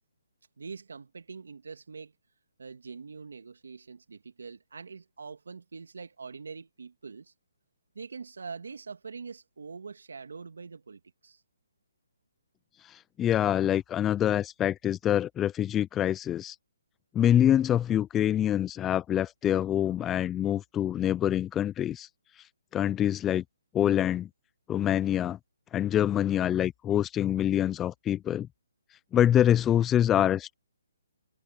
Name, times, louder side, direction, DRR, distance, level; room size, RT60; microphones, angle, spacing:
voice 1, 0.6-2.1 2.6-7.3 7.9-11.4, right 5 dB, 80° right, 2.6 m, -44 dB
voice 2, 12.8-16.6 17.1-22.1 22.7-23.4 23.7-24.3 24.7-25.4 25.7-28.5 29.1-30.5, left 11 dB, 15° left, 0.5 m, -25 dB
hypercardioid pair, 155°, 0 cm